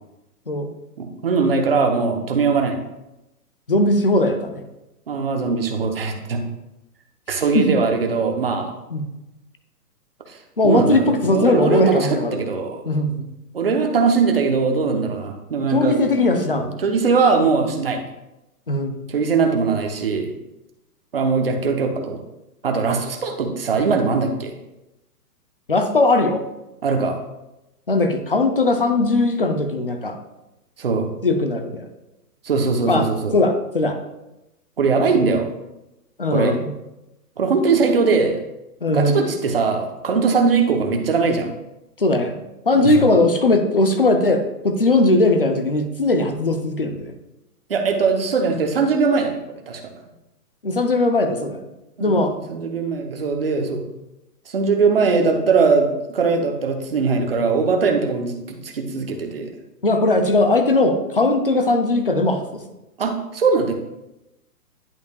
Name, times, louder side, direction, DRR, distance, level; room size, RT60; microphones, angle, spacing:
voice 1, 1.0-2.8 5.1-6.4 7.3-8.7 10.3-10.4 10.6-12.8 13.5-16.0 16.5-18.0 19.1-20.3 21.1-22.2 22.6-24.5 26.8-27.2 30.8-31.1 32.4-33.3 34.8-35.5 36.3-36.5 37.4-38.4 38.9-41.5 42.8-42.9 47.7-49.9 52.0-53.8 54.5-59.5 63.0-63.8, right 4 dB, 40° right, 3 dB, 0.8 m, -20 dB
voice 2, 3.7-4.6 7.5-7.7 8.9-9.1 10.6-12.4 12.9-13.2 15.7-16.7 18.7-19.0 25.7-26.4 27.9-30.2 31.2-31.9 32.9-34.0 36.2-36.7 38.8-39.3 42.0-42.4 42.7-47.1 50.6-51.7 52.0-52.4 59.8-62.6, left 2 dB, 40° left, 7 dB, 0.5 m, -19 dB
10.5 x 5.4 x 2.3 m, 0.95 s
hypercardioid pair, 180°, 47 cm